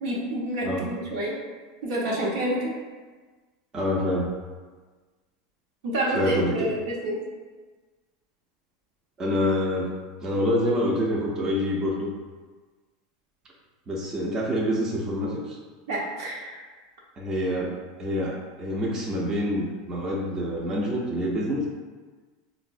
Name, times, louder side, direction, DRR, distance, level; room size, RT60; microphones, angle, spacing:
voice 1, 0.0-1.3 1.8-2.7 5.8-7.1 15.9-16.6, right 1 dB, 75° right, -3 dB, 0.8 m, -28 dB
voice 2, 3.7-4.3 6.1-6.7 9.2-9.9 10.2-12.1 13.9-15.6 17.2-17.7 18.0-21.7, equal, 25° right, -3 dB, 0.5 m, -26 dB
3.8 x 2.0 x 2.5 m, 1.4 s
supercardioid pair, 115°, 2 cm